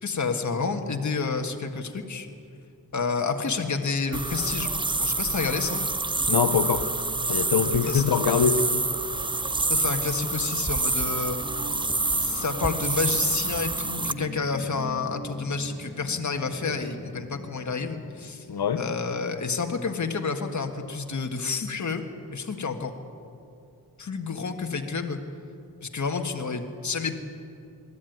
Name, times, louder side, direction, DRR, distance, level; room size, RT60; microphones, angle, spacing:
voice 1, 0.0-2.3 2.9-4.7 5.0-5.8 7.9-8.0 9.7-11.4 12.2-18.5 18.8-22.0 22.3-22.9 24.0-25.2 25.8-27.2, left 4 dB, 50° left, 5 dB, 1.6 m, -29 dB
sound 1, 4.1-14.1, right 3 dB, 15° right, 0.4 m, -27 dB
voice 2, 6.3-6.9 7.3-8.8 18.5-18.8, left 7 dB, 75° left, 10 dB, 1.1 m, -23 dB
sound 2, 10.4-19.2, right 1 dB, 40° right, 6.1 m, -43 dB
22.5 x 14.0 x 9.4 m, 2.6 s
wide cardioid pair, 115°, 38 cm